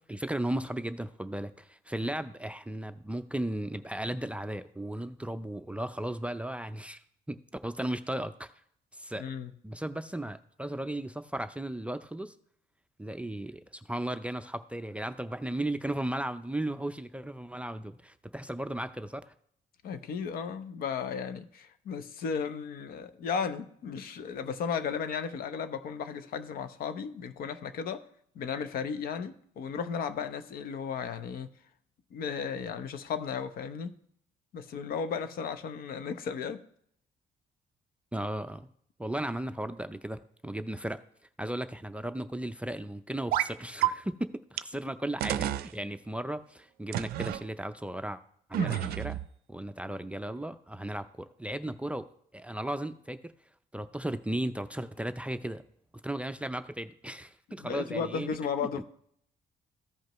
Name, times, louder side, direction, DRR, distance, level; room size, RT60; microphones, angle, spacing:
voice 1, 0.0-7.0 7.3-7.4 7.6-8.5 8.9-9.3 9.6-12.3 13.0-19.3 38.1-38.7 39.0-41.0 41.4-48.2 48.5-49.2 49.5-52.1 52.3-53.3 53.7-55.6 56.0-58.3 58.8-58.9, right 1 dB, 10° right, 9 dB, 0.4 m, -35 dB
voice 2, 9.1-9.5 19.8-28.0 28.3-31.5 32.1-33.9 34.5-36.6 48.6-48.9 57.6-58.8, left 6 dB, 70° left, 11 dB, 0.8 m, -35 dB
sound 1, 43.3-43.5 43.8-43.9 44.6-44.7 45.2-45.7 46.9-47.4 48.5-49.3, right 13 dB, 80° right, 0.4 m, -29 dB
14.5 x 5.2 x 3.0 m, 0.66 s
cardioid pair, 100°, 16 cm